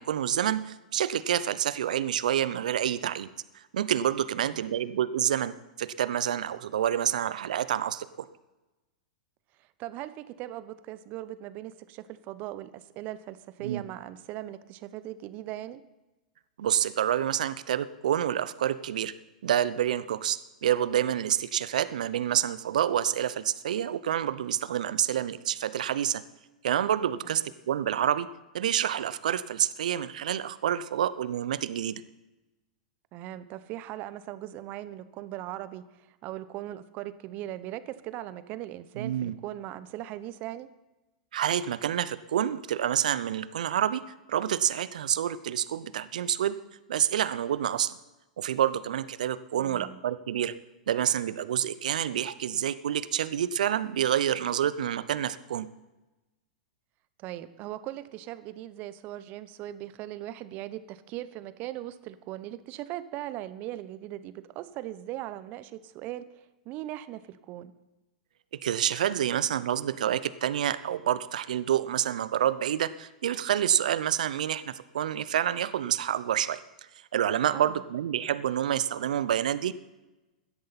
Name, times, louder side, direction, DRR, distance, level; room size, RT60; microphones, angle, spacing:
voice 1, 0.0-3.3 3.7-8.1 13.6-13.8 16.6-19.1 19.4-26.2 26.6-28.3 28.5-32.0 39.0-39.3 41.3-44.0 44.3-46.6 46.9-48.0 48.4-50.5 50.9-55.7 68.6-76.6 77.1-79.7, right 10 dB, 70° right, 16 dB, 0.7 m, -28 dB
voice 2, 9.6-15.8 27.2-27.5 33.1-40.7 49.5-50.0 57.2-67.7 77.5-77.8, right 14 dB, 40° right, 14 dB, 0.9 m, -39 dB
17.0 x 13.0 x 4.2 m, 1.1 s
hypercardioid pair, 100°, 4 cm